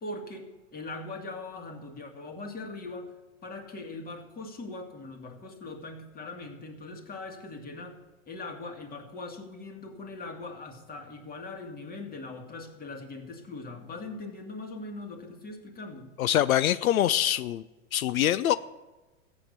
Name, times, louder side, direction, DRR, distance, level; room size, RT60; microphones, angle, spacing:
voice 1, 0.0-3.1 3.4-8.0 8.3-16.1, left 3 dB, 20° left, 4 dB, 2.4 m, -41 dB
voice 2, 16.2-17.6 17.9-18.6, left 12 dB, 85° left, 15 dB, 0.6 m, -24 dB
14.5 x 8.8 x 6.7 m, 1.1 s
hypercardioid pair, 115°, 41 cm